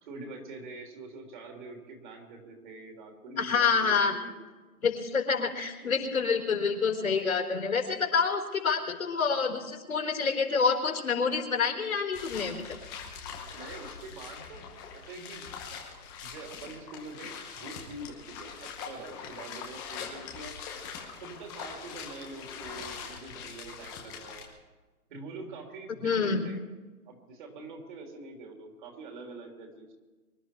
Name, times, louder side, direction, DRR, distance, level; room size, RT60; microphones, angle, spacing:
voice 1, 0.0-4.5 13.5-14.6 14.9-15.8 16.2-20.5 21.2-24.5 25.1-26.6 27.1-29.9, right 3 dB, 35° right, 2 dB, 3.3 m, -45 dB
voice 2, 3.4-4.1 4.8-12.8 26.0-26.4, left 5 dB, 65° left, 2 dB, 3.9 m, -27 dB
sound 1, 12.1-24.4, left 6 dB, 10° left, 0.9 m, -43 dB
24.5 x 11.5 x 4.5 m, 1.3 s
hypercardioid pair, 155°, 44 cm